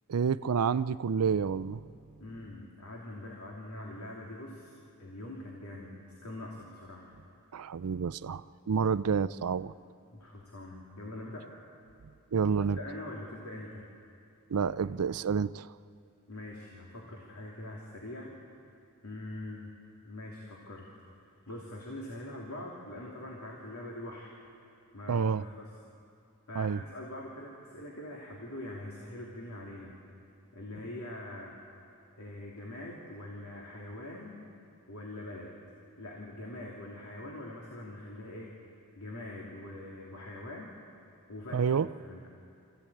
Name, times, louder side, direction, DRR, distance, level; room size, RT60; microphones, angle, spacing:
voice 1, 0.1-1.8 7.5-9.7 12.3-12.8 14.5-15.7 25.1-25.5 26.6-26.8 41.5-41.9, right 6 dB, 75° right, 0.5 m, -29 dB
voice 2, 2.2-4.7 5.0-5.9 6.2-7.1 10.1-11.5 12.7-13.9 16.3-18.3 19.0-19.7 20.0-20.9 21.5-24.4 24.9-25.7 26.5-29.9 30.5-31.5 32.2-34.4 34.9-35.5 36.0-38.5 38.9-40.7 41.3-41.7 42.0-42.3, left 1 dB, 80° left, 2.9 m, -43 dB
26.0 x 15.5 x 8.6 m
head